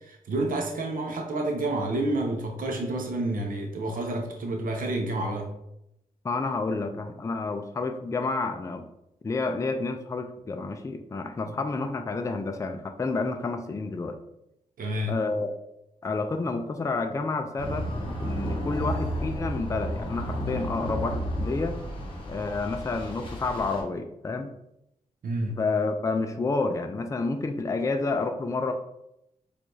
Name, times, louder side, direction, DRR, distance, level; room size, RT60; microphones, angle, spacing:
voice 1, 0.0-5.5 11.4-11.5 14.8-15.2 25.2-25.6, right 2 dB, 75° right, 2 dB, 0.6 m, -29 dB
voice 2, 6.2-8.9 9.2-14.2 15.1-15.5 16.0-17.9 18.2-21.8 22.3-24.5 25.5-28.7, left 3 dB, 20° left, 6 dB, 0.3 m, -29 dB
sound 1, 17.6-23.8, equal, 35° left, 0.9 m, -32 dB
4.5 x 2.4 x 2.6 m, 0.82 s
wide cardioid pair, 95°, 15 cm